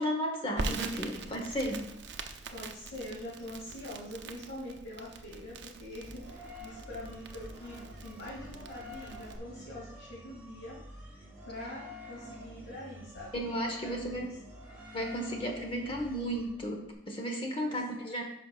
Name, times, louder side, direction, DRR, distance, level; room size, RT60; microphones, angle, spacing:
voice 1, 0.0-1.9 13.3-14.3 14.9-18.2, equal, 30° left, 2 dB, 0.9 m, -34 dB
Crackle, 0.6-9.4, right 3 dB, 75° right, 0.6 m, -43 dB
voice 2, 2.5-10.8 11.4-14.3 17.7-17.8, left 1 dB, 85° left, -8 dB, 2.2 m, -44 dB
sound 1, 6.0-16.9, left 1 dB, 10° right, 1.7 m, -49 dB
11.0 x 5.3 x 2.4 m, 0.83 s
head